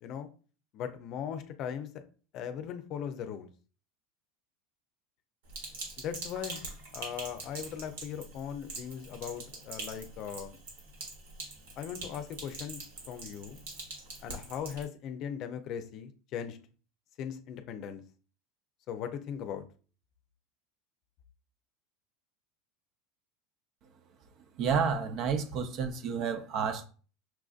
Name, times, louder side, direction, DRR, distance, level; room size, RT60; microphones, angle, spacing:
voice 1, 0.7-1.9 2.3-3.5 6.0-6.7 6.9-10.6 11.8-12.8 13.1-13.7 14.2-16.6 17.2-18.0 18.9-19.6, left 8 dB, 50° left, 0.5 m, -39 dB
Sink (filling or washing), 5.5-14.8, right 3 dB, 85° right, 1.5 m, -44 dB
voice 2, 24.6-26.8, right 6 dB, 50° right, 0.6 m, -30 dB
5.8 x 2.5 x 2.4 m
supercardioid pair, 110°, 0 cm